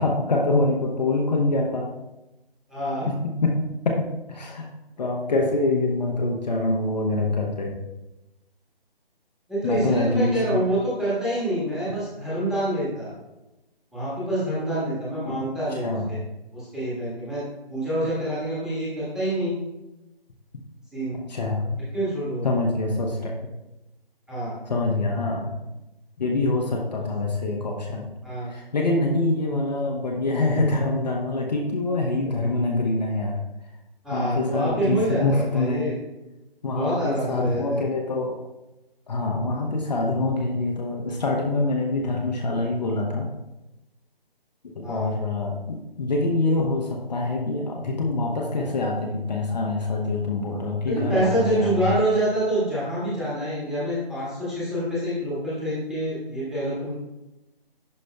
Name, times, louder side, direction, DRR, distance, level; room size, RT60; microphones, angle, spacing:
voice 1, 0.0-1.9 3.1-3.6 3.8-4.7 5.0-7.8 9.6-10.7 15.2-15.4 15.7-16.1 21.3-21.7 22.4-23.5 24.7-25.6 26.2-28.1 28.5-33.4 34.1-35.9 36.6-38.3 39.1-43.3 44.7-52.0, left 2 dB, 45° left, 0 dB, 0.9 m, -25 dB
voice 2, 2.7-3.1 9.5-13.1 13.9-16.2 16.5-17.4 17.7-19.5 20.9-21.2 21.9-22.5 23.2-23.3 24.3-24.5 28.2-28.5 34.0-36.0 36.7-37.8 44.8-45.1 50.8-56.9, right 1 dB, ahead, -11 dB, 1.5 m, -26 dB
11.0 x 5.3 x 2.2 m, 0.99 s
figure-of-eight pair, 150°, 30 cm